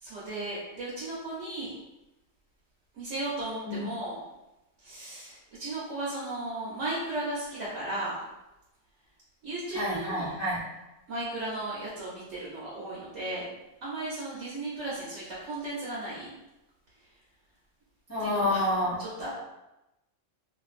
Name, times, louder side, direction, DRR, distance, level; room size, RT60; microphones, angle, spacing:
voice 1, 0.0-1.7 2.9-4.1 4.8-8.2 9.4-10.3 11.1-13.4 13.8-16.3 18.2-18.6 19.0-19.3, right 2 dB, 70° right, -7 dB, 1.0 m, -35 dB
voice 2, 9.7-10.6 18.1-19.0, left 1 dB, 25° left, -9 dB, 0.4 m, -28 dB
2.5 x 2.5 x 2.4 m, 0.96 s
omnidirectional pair, 1.3 m